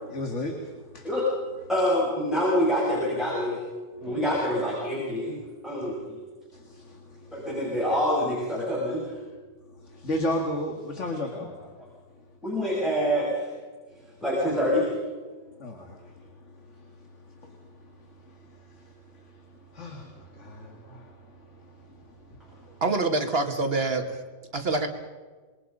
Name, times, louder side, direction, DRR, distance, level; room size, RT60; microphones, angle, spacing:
voice 1, 0.1-1.1 4.0-4.2 6.5-7.5 9.7-11.5 15.6-22.8, left 1 dB, 45° left, 3 dB, 2.2 m, -36 dB
voice 2, 1.7-3.6 4.0-5.4 5.6-6.2 7.3-9.2 11.4-11.5 12.4-13.5 14.2-15.0, equal, ahead, -5 dB, 6.4 m, -26 dB
voice 3, 22.8-24.2 24.5-24.9, right 3 dB, 35° right, 5 dB, 1.9 m, -25 dB
26.5 x 22.5 x 5.4 m, 1.4 s
omnidirectional pair, 1.8 m